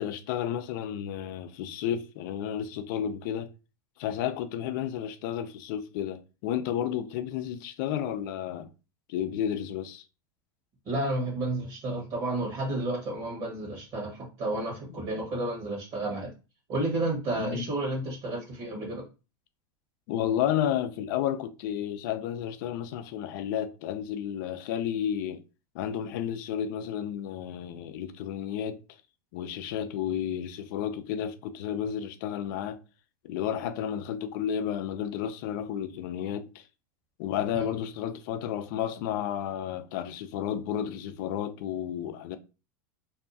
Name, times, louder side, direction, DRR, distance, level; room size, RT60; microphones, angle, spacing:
voice 1, 0.0-3.5 4.0-8.7 9.1-10.0 14.9-15.0 17.3-17.7 20.1-25.4 25.7-28.8 29.3-32.8 33.2-36.6 37.2-42.4, left 9 dB, 65° left, 0.4 m, -32 dB
voice 2, 10.9-16.3 16.7-19.0 37.5-37.7, right 2 dB, 45° right, 1.2 m, -31 dB
2.7 x 2.2 x 2.5 m
supercardioid pair, 115°, 12 cm